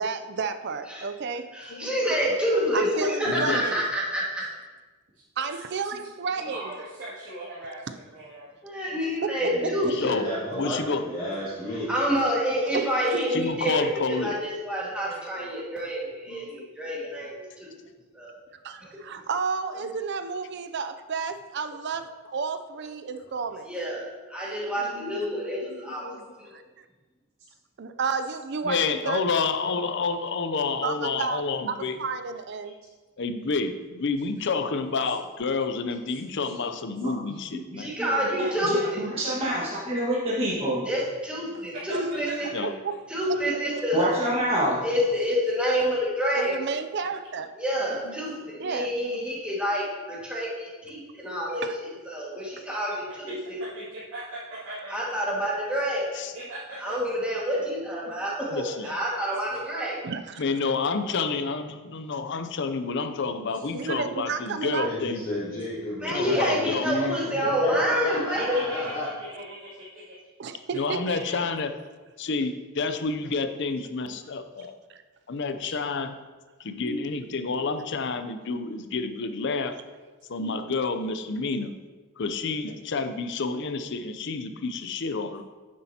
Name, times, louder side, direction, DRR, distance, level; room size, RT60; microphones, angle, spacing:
voice 1, 0.0-1.5 2.7-3.8 5.4-6.6 9.2-9.7 12.7-13.3 18.5-23.7 26.5-26.6 27.8-28.8 29.1-29.2 30.8-32.7 42.6-42.9 43.3-43.4 46.3-47.5 48.6-48.9 51.6-51.8 60.0-60.4 63.7-64.9 70.4-71.0 74.9-75.0, right 5 dB, 50° right, 9 dB, 0.4 m, -31 dB
voice 2, 1.5-4.4 8.6-10.1 11.9-17.7 18.1-18.3 23.7-26.1 26.4-26.5 37.8-39.0 40.8-42.5 43.1-44.1 44.8-46.5 47.6-53.6 54.9-56.1 56.8-60.0 66.0-68.6, equal, 5° right, -6 dB, 1.8 m, -28 dB
voice 3, 3.3-3.6 9.9-10.3 10.6-11.0 13.3-14.3 16.3-16.5 24.5-24.6 25.0-26.2 28.7-32.0 33.2-37.9 42.5-42.7 48.1-48.2 48.6-48.7 49.1-49.2 56.2-56.3 58.5-58.9 60.4-65.2 66.1-67.2 70.7-71.7 72.2-74.7 75.3-76.1 76.6-79.8 80.3-81.7 82.2-85.4, left 4 dB, 55° left, 9 dB, 0.5 m, -29 dB
voice 4, 6.3-8.5 32.6-32.7 36.1-36.5 37.3-37.4 41.9-42.5 45.4-45.5 53.3-53.4 53.6-54.9 56.3-56.9 58.0-58.1 68.3-70.1 71.1-71.5, right 1 dB, 85° right, -11 dB, 2.4 m, -40 dB
voice 5, 9.4-11.9 64.8-69.1, left 1 dB, 20° left, -10 dB, 2.0 m, -32 dB
voice 6, 37.7-40.8 43.9-44.8, right 1 dB, 25° right, -8 dB, 1.6 m, -27 dB
9.7 x 7.5 x 2.9 m, 1.3 s
head